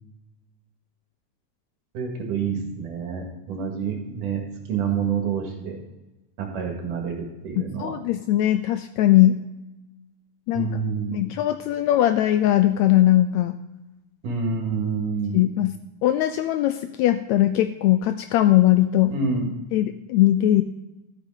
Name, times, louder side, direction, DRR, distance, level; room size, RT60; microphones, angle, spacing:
voice 1, 1.9-4.4 4.7-5.8 6.4-7.9 10.5-11.3 14.2-15.4 19.1-19.6, right 5 dB, 90° right, 1 dB, 3.5 m, -27 dB
voice 2, 7.8-9.4 10.5-10.8 11.1-13.6 15.3-19.1 19.7-20.6, left 13 dB, 80° left, 10 dB, 1.6 m, -20 dB
13.0 x 8.1 x 3.7 m, 1.0 s
omnidirectional pair, 3.6 m